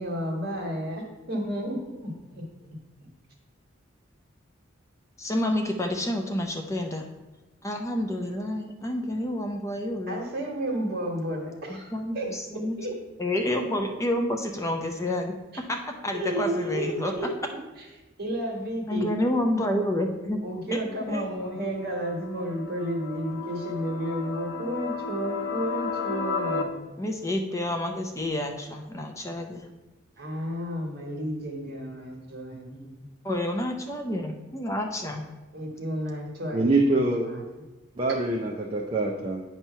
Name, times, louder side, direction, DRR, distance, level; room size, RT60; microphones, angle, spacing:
voice 1, 0.0-2.4 10.1-13.0 16.1-17.6 18.2-19.1 20.4-26.9 30.2-33.0 35.5-37.4, equal, 55° right, 0 dB, 1.5 m, -32 dB
voice 2, 5.2-7.1 7.6-10.2 11.9-12.8 13.2-15.3 15.7-15.8 16.0-17.1 18.9-20.4 20.7-20.8 21.1-21.2 27.0-29.7 33.2-35.2, left 1 dB, 15° left, 3 dB, 0.5 m, -29 dB
sound 1, 21.1-26.6, left 4 dB, 85° left, 0.7 m, -34 dB
voice 3, 36.5-37.3 38.0-39.4, right 2 dB, 30° right, 0 dB, 0.5 m, -24 dB
9.0 x 3.0 x 5.5 m, 1.1 s
head